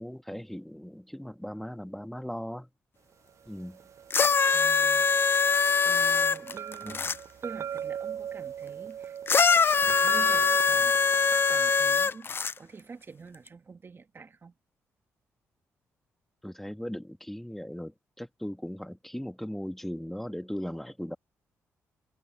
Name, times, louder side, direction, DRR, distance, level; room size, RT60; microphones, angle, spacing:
voice 1, 0.0-2.7 3.5-3.8 6.8-7.1 16.4-21.2, equal, 5° left, 2.1 m, -38 dB
sound 1, 3.5-11.8, right 9 dB, 60° right, 0.5 m, -40 dB
sound 2, 4.1-7.2 9.3-12.5 13.5-13.6, left 5 dB, 40° left, 0.5 m, -23 dB
voice 2, 4.5-5.3 5.8-7.0 7.4-9.2 10.0-10.9 11.4-14.5, right 4 dB, 40° right, 2.0 m, -46 dB
supercardioid pair, 60°, 6 cm